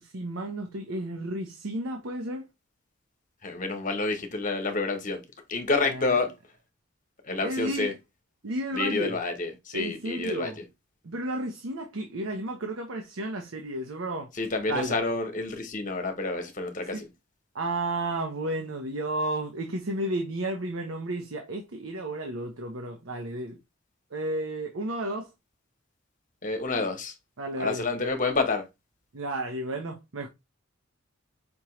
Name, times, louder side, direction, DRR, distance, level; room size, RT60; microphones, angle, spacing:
voice 1, 0.0-2.5 5.8-6.2 7.4-7.9 8.4-9.2 9.7-10.6 11.0-14.3 14.7-14.9 16.9-17.0 17.5-23.6 24.1-25.3 27.4-27.9 29.1-30.3, right 1 dB, 75° right, 0.8 m, -32 dB
voice 2, 3.4-5.2 5.5-6.3 7.2-7.9 8.7-10.5 14.4-17.1 26.4-27.1 27.6-28.6, left 3 dB, 40° left, 1.1 m, -28 dB
5.2 x 3.0 x 3.1 m
head